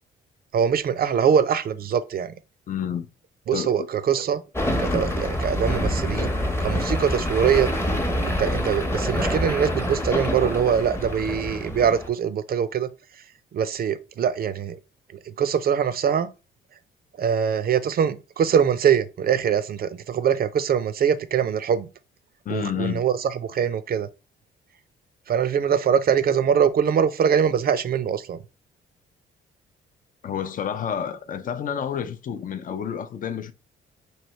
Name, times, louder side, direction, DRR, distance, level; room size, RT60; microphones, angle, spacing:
voice 1, 0.5-2.3 3.5-4.4 4.8-6.3 6.6-7.7 8.2-12.9 13.5-14.8 15.3-16.3 17.2-21.9 22.5-24.1 25.3-28.4, right 8 dB, 50° right, 0.5 m, -23 dB
voice 2, 2.7-3.1 3.5-3.8 22.4-23.0 30.2-33.5, left 8 dB, 45° left, 0.5 m, -29 dB
sound 1, 4.6-12.1, left 1 dB, 10° left, 0.8 m, -26 dB
3.2 x 2.8 x 4.2 m
cardioid pair, 90°, 20 cm